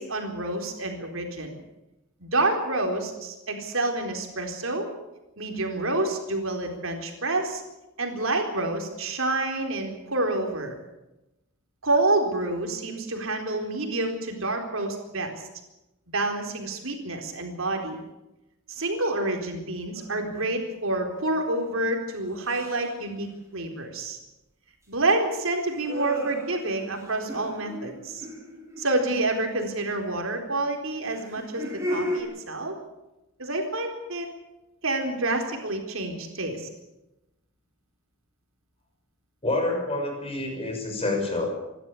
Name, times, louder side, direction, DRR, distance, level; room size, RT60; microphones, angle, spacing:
voice 1, 0.0-1.6 2.2-4.9 5.4-7.6 8.0-10.8 11.8-15.3 16.1-18.0 18.7-24.2 24.9-28.3 28.8-32.7 33.4-34.3 34.8-36.7, right 2 dB, 65° right, 3 dB, 4.1 m, -28 dB
sound 1, 20.0-20.3 22.4-23.0 25.6-29.2 31.0-32.2, left 1 dB, 15° right, 5.4 m, -35 dB
voice 2, 39.4-41.5, left 2 dB, 30° left, 3 dB, 6.0 m, -27 dB
27.5 x 12.5 x 8.5 m, 0.95 s
head